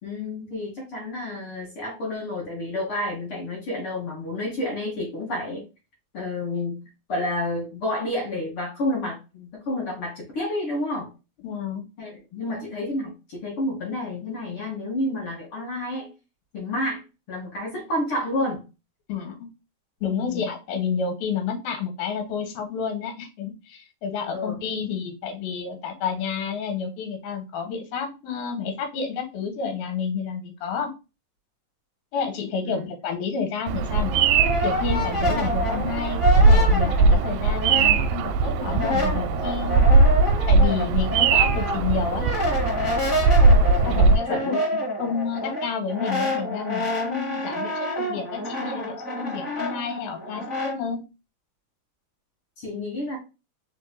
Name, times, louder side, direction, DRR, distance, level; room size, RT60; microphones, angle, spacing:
voice 1, 0.0-5.6 6.1-6.8 7.1-11.1 12.0-16.1 16.5-18.6 20.2-20.5 24.3-24.6 32.6-32.9 43.8-44.6 52.6-53.2, left 1 dB, 45° left, -3 dB, 2.0 m, -30 dB
voice 2, 11.4-11.8 19.1-19.5 20.0-30.9 32.1-34.2 34.6-40.0 40.5-42.3 43.8-44.6 45.0-51.0, left 6 dB, 80° left, 5 dB, 2.9 m, -30 dB
Bird vocalization bird call bird song, 33.7-44.2, right 3 dB, 80° right, 2.1 m, -20 dB
Brass instrument, 33.9-38.3 38.6-50.8, left 2 dB, 20° left, 2.7 m, -28 dB
5.3 x 4.0 x 2.3 m, 0.29 s
omnidirectional pair, 4.2 m